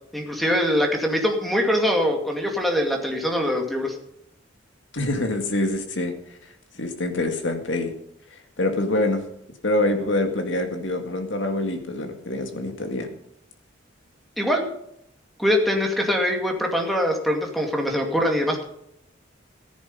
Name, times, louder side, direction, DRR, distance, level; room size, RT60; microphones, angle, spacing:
voice 1, 0.1-4.0 14.4-14.6 15.4-18.6, equal, ahead, 2 dB, 2.2 m, -23 dB
voice 2, 4.9-6.1 6.8-7.9 8.6-9.2 9.6-13.1, left 2 dB, 70° left, 5 dB, 2.0 m, -25 dB
14.0 x 10.5 x 5.4 m, 0.76 s
head